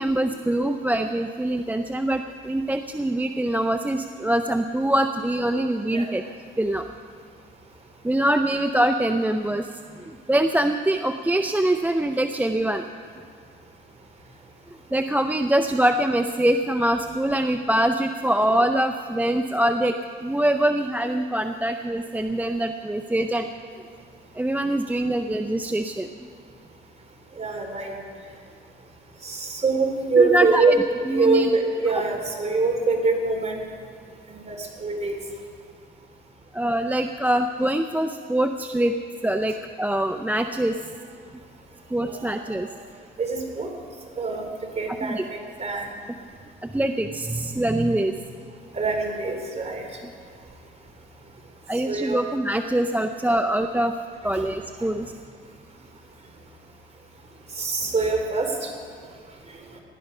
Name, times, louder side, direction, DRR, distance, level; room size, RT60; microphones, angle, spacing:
voice 1, 0.0-6.2 6.6-6.8 8.0-9.7 10.3-12.9 14.9-19.9 20.2-23.5 24.4-26.1 30.2-30.7 31.1-31.5 36.5-38.9 39.2-40.8 41.9-42.7 45.0-45.2 46.7-48.2 51.7-53.9 54.2-55.1, right 1 dB, 10° right, 7 dB, 0.6 m, -24 dB
voice 2, 27.3-28.0 29.2-33.6 34.3-35.2 42.0-42.7 43.2-43.7 44.1-45.9 48.7-49.9 51.8-52.2 54.2-54.4 57.5-58.7 59.5-59.6, right 3 dB, 35° right, 3 dB, 3.0 m, -24 dB
19.5 x 11.5 x 5.5 m, 2.1 s
cardioid pair, 90°, 20 cm